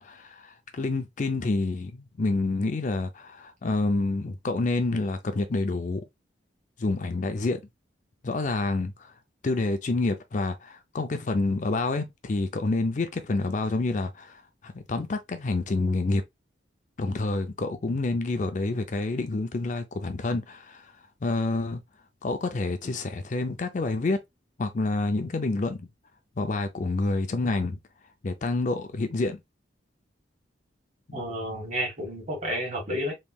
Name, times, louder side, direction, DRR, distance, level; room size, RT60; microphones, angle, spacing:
voice 1, 0.0-6.0 6.8-7.6 8.2-9.1 9.4-16.2 17.0-20.9 21.2-21.8 22.2-24.2 24.6-25.9 26.4-27.8 28.2-29.4 31.1-31.2, left 2 dB, 40° left, 0.4 m, -28 dB
voice 2, 31.1-33.1, equal, 40° right, 1.7 m, -31 dB
3.5 x 3.1 x 2.3 m
head